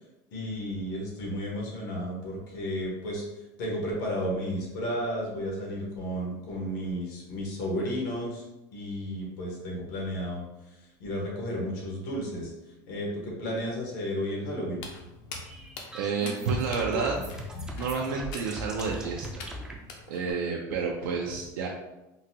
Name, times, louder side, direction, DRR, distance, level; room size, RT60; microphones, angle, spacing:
voice 1, 0.3-3.2 3.6-8.4 8.7-10.4 11.0-12.5 12.9-14.8 16.9-17.0, equal, 75° left, -2 dB, 1.2 m, -33 dB
Walk footsteps, 14.7-20.3, left 3 dB, 50° left, 0.5 m, -43 dB
sound 1, 15.4-19.8, right 1 dB, 5° right, 0.3 m, -40 dB
voice 2, 15.9-17.2 17.8-19.4 20.1-21.7, right 5 dB, 85° right, -1 dB, 0.4 m, -30 dB
3.8 x 2.2 x 2.8 m, 0.97 s
supercardioid pair, 160°, 10 cm